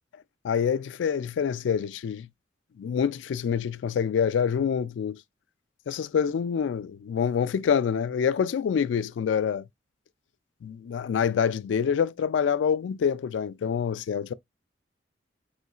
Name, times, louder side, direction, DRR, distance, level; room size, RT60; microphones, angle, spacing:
voice 1, 0.4-2.3 2.8-5.2 5.9-9.7 10.6-14.3, left 7 dB, 85° left, 0.3 m, -26 dB
5.5 x 3.1 x 2.4 m
head